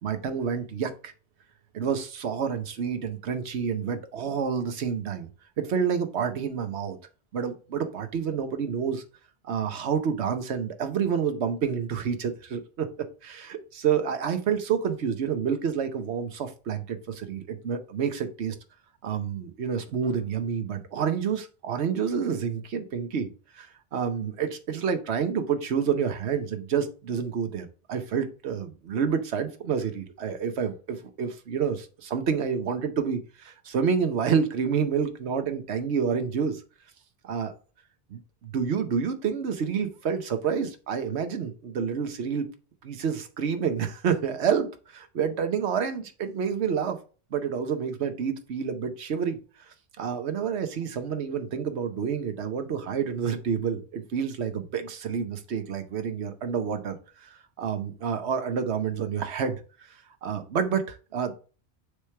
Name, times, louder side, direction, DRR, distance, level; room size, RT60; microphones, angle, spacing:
voice 1, 0.0-1.1 1.7-5.3 5.6-7.0 7.3-9.0 9.4-12.9 13.2-18.6 19.0-23.3 23.5-36.6 37.2-37.5 38.1-42.5 42.8-47.0 47.3-49.4 50.0-60.0 60.2-61.3, right 7 dB, 85° right, 9 dB, 1.1 m, -28 dB
6.6 x 3.3 x 5.6 m, 0.36 s
omnidirectional pair, 1.1 m